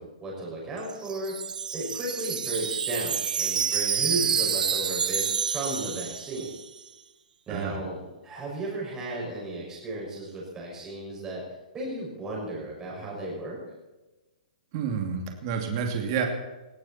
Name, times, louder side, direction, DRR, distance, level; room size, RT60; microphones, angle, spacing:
voice 1, 0.0-1.4 1.7-6.5 7.5-11.4 11.7-13.6, right 2 dB, 10° right, -4 dB, 6.1 m, -34 dB
Wind chime, 0.8-6.8, right 7 dB, 90° right, 0.9 m, -28 dB
voice 2, 7.5-7.8 14.7-16.3, right 6 dB, 35° right, 3 dB, 2.5 m, -29 dB
19.5 x 16.0 x 4.3 m, 1.1 s
hypercardioid pair, 165°, 4 cm